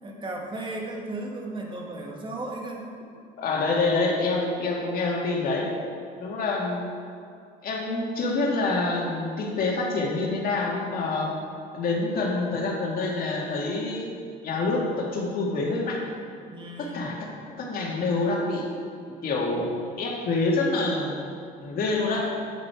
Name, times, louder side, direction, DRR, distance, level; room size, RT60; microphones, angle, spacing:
voice 1, 0.0-2.9 16.5-17.2, right 2 dB, 30° right, 1 dB, 1.7 m, -35 dB
voice 2, 3.4-5.7 6.2-6.9 7.6-11.3 11.7-14.1 14.4-16.0 16.8-17.3 17.6-18.7 19.2-21.2 21.6-22.3, left 3 dB, 60° left, -2 dB, 2.1 m, -26 dB
9.6 x 8.0 x 4.7 m, 2.5 s
cardioid pair, 110°, 17 cm